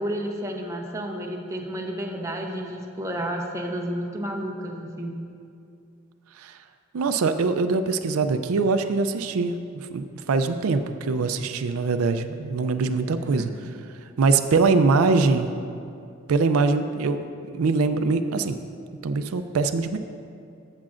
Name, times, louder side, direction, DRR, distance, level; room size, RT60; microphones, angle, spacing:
voice 1, 0.0-5.2, equal, 15° right, 1 dB, 0.7 m, -31 dB
voice 2, 6.9-13.5 14.2-15.5 16.3-17.3 17.5-18.6 19.0-20.0, right 4 dB, 85° right, 9 dB, 0.4 m, -23 dB
15.0 x 7.3 x 2.5 m, 2.5 s
head